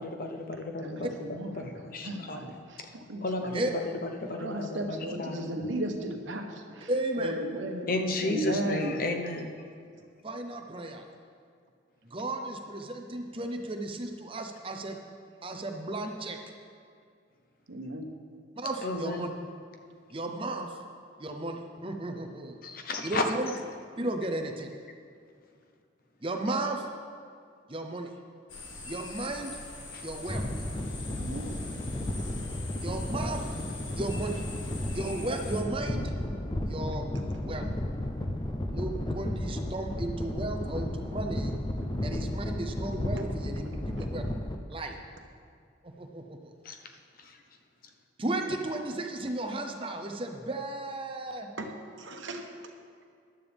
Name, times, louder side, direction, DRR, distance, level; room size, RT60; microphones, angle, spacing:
voice 1, 0.0-2.4 3.2-5.5 7.9-9.5 18.8-19.3 22.6-23.2 29.9-30.0 46.6-46.9 47.2-47.4, left 2 dB, 45° left, 4 dB, 0.9 m, -33 dB
voice 2, 0.8-1.7 2.0-2.5 2.9-3.5 4.4-6.9 7.2-7.9 8.2-9.0 17.7-18.1 31.2-31.5 51.6-52.5, right 1 dB, 75° right, 4 dB, 1.1 m, -35 dB
voice 3, 6.9-7.4 10.2-11.0 12.1-15.0 15.4-16.4 18.6-19.3 20.1-20.8 21.2-22.6 23.0-23.5 24.0-24.7 26.2-26.9 27.7-28.1 28.8-29.6 30.0-30.4 31.4-31.6 32.8-33.5 34.0-34.4 34.9-36.1 36.6-37.1 37.4-37.6 38.7-41.6 42.0-44.2 44.7-45.0 45.8-46.5 48.2-51.5, right 2 dB, 25° right, 4 dB, 0.7 m, -34 dB
sound 1, 28.5-35.6, left 3 dB, 75° left, 1.5 m, -43 dB
sound 2, 30.3-44.6, left 1 dB, 20° left, 0.5 m, -33 dB
14.5 x 11.5 x 3.5 m, 2.2 s
head